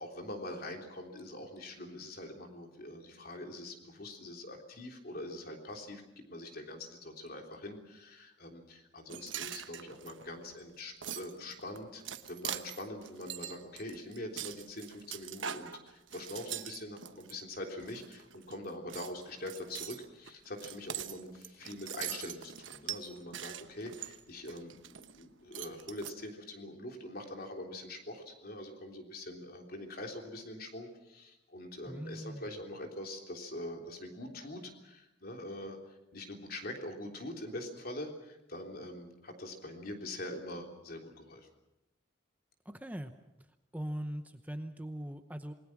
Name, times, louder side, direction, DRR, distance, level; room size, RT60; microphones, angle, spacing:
voice 1, 0.0-6.0 6.3-12.0 12.3-35.8 36.1-41.5, left 1 dB, 50° left, 3 dB, 3.6 m, -44 dB
sound 1, 9.1-17.3 17.8-18.6 18.9-25.2 25.5-26.1, right 10 dB, 80° right, 1.1 m, -43 dB
voice 2, 31.9-32.5 42.6-43.1 43.7-45.5, equal, 10° right, 8 dB, 0.9 m, -40 dB
28.0 x 20.5 x 6.1 m, 0.92 s
head